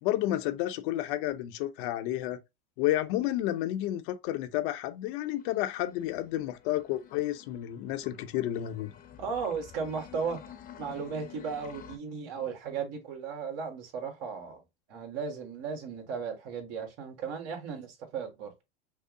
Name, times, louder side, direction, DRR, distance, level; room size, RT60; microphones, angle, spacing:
voice 1, 0.0-2.4 2.8-8.9, left 14 dB, 60° left, 0.7 m, -31 dB
sound 1, 5.2-12.0, left 9 dB, 30° left, 0.8 m, -51 dB
voice 2, 9.2-10.4 10.8-14.6 14.9-18.5, right 5 dB, 55° right, 1.7 m, -35 dB
5.5 x 2.0 x 3.6 m
hypercardioid pair, 110°, 29 cm